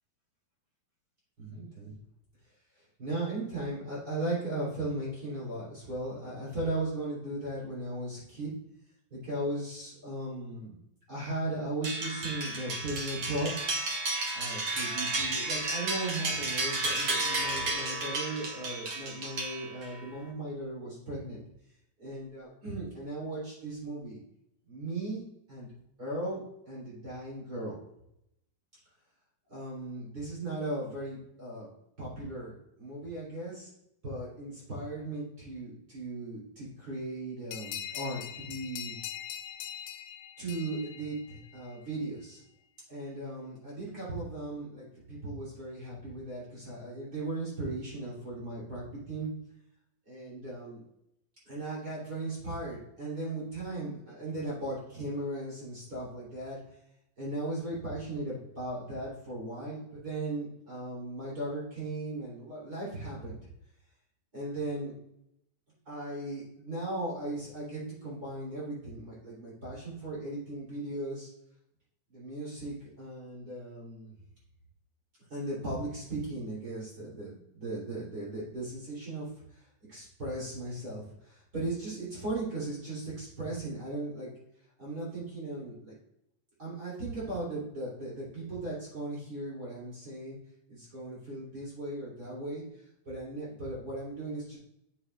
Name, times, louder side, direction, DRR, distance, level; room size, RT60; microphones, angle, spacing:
voice 1, 1.4-1.9 3.0-8.5 9.1-10.8 11.1-13.6 14.3-21.4 22.0-24.2 24.7-25.7 26.0-27.8 29.5-31.7 32.0-33.7 34.0-39.0 40.4-42.4 42.9-49.3 50.1-50.8 51.5-56.6 57.2-63.4 64.3-65.0 65.9-71.3 72.1-74.1 75.3-79.6 79.9-84.3 84.8-85.9 86.6-90.4 90.7-92.6 93.1-94.6, right 2 dB, 25° right, -8 dB, 3.7 m, -37 dB
sound 1, 11.8-20.0, right 2 dB, 65° right, 1.2 m, -32 dB
sound 2, 37.5-41.7, left 11 dB, 80° left, 2.2 m, -42 dB
8.2 x 8.0 x 2.5 m, 0.78 s
omnidirectional pair, 4.1 m